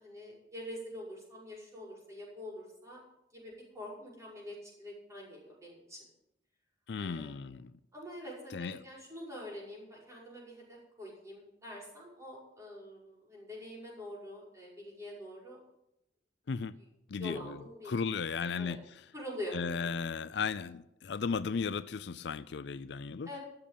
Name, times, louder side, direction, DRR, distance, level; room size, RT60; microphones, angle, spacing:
voice 1, 0.0-3.0 3.3-6.0 7.0-7.4 7.9-15.6 17.2-17.9 18.4-18.8 19.1-19.9 23.2-23.4, left 1 dB, 15° right, -4 dB, 5.7 m, -45 dB
voice 2, 6.9-7.7 8.5-8.8 16.5-16.7 17.1-18.8 19.5-23.3, left 5 dB, 65° left, 15 dB, 0.4 m, -35 dB
13.5 x 7.0 x 9.1 m, 0.84 s
head